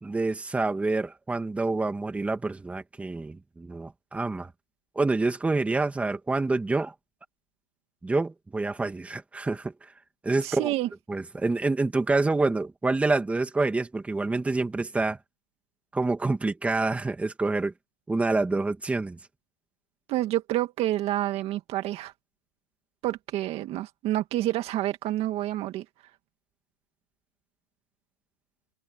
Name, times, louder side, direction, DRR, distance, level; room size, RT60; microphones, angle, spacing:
voice 1, 0.0-4.5 5.0-6.9 8.0-9.7 10.2-10.7 11.1-15.2 15.9-17.7 18.1-19.2, right 3 dB, 5° right, 2.6 m, -27 dB
voice 2, 10.4-10.9 20.1-22.1 23.0-25.8, right 14 dB, 35° right, 2.0 m, -28 dB
supercardioid pair, 145°, 19 cm